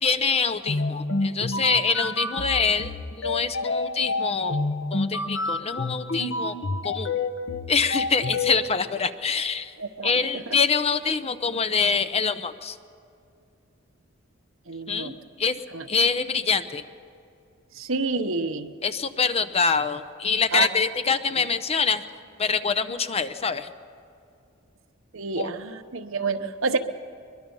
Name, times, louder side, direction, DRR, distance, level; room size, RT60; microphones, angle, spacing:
voice 1, 0.0-2.9 3.2-4.6 4.9-6.6 6.8-7.1 7.7-9.7 10.0-12.8 14.9-15.1 15.4-15.5 15.9-16.8 18.8-22.0 22.4-23.7 25.4-25.5, left 5 dB, 30° left, 11 dB, 0.7 m, -25 dB
sound 1, 0.6-8.5, left 2 dB, 65° left, 1.1 m, -28 dB
voice 2, 9.8-10.6 14.7-15.2 15.7-15.9 17.7-18.7 20.5-20.7 25.1-26.8, right 4 dB, 70° right, 8 dB, 1.0 m, -28 dB
22.5 x 22.0 x 5.5 m, 2.5 s
head